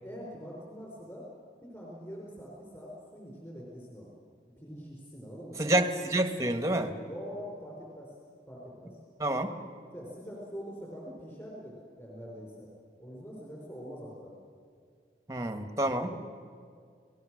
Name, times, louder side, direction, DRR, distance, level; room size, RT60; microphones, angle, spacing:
voice 1, 0.0-1.3 1.6-4.1 4.6-5.8 7.0-8.2 8.5-9.0 9.9-12.7 13.0-14.3 16.0-16.2, equal, 20° left, -4 dB, 5.3 m, -44 dB
voice 2, 5.6-6.9 9.2-9.5 15.3-16.1, right 1 dB, 15° right, 7 dB, 1.5 m, -28 dB
30.0 x 19.0 x 6.5 m, 2.2 s
head